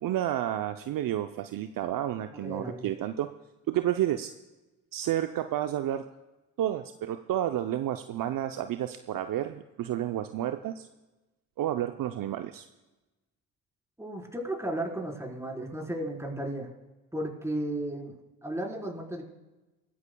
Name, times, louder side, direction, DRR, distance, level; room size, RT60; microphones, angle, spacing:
voice 1, 0.0-3.3 3.7-4.3 4.9-6.0 6.6-10.9 11.6-12.7, right 12 dB, 55° right, 8 dB, 0.7 m, -30 dB
voice 2, 2.3-2.9 14.0-16.7 17.1-18.1 18.4-19.2, right 1 dB, 5° right, -1 dB, 4.3 m, -34 dB
27.5 x 14.5 x 2.3 m, 1.1 s
hypercardioid pair, 60°, 41 cm